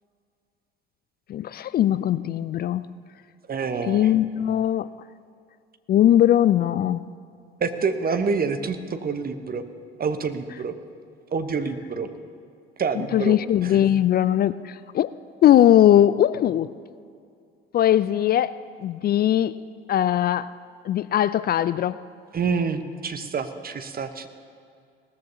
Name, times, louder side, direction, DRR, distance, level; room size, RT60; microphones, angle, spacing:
voice 1, 1.3-2.9 3.9-4.9 5.9-7.1 13.1-15.1 15.4-16.7 17.7-19.6 19.9-20.6 20.8-22.0, left 11 dB, 35° left, 16 dB, 0.4 m, -20 dB
voice 2, 3.5-4.1 7.6-9.6 10.0-10.7 11.3-12.1 12.8-13.3 13.6-13.8 22.3-24.3, right 5 dB, 30° right, 9 dB, 1.0 m, -27 dB
18.5 x 14.0 x 2.8 m, 2.3 s
figure-of-eight pair, 55°, 30 cm